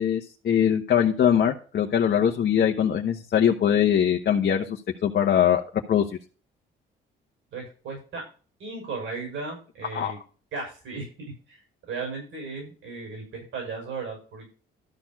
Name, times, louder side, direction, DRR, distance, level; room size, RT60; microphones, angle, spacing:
voice 1, 0.0-5.6 5.9-6.0 9.9-10.1, left 9 dB, 55° left, 1 dB, 1.2 m, -22 dB
voice 2, 7.5-8.2 8.6-10.2 10.5-11.1 11.5-14.5, right 4 dB, 80° right, 1 dB, 6.1 m, -36 dB
13.0 x 4.5 x 5.9 m, 0.37 s
cardioid pair, 90°, 20 cm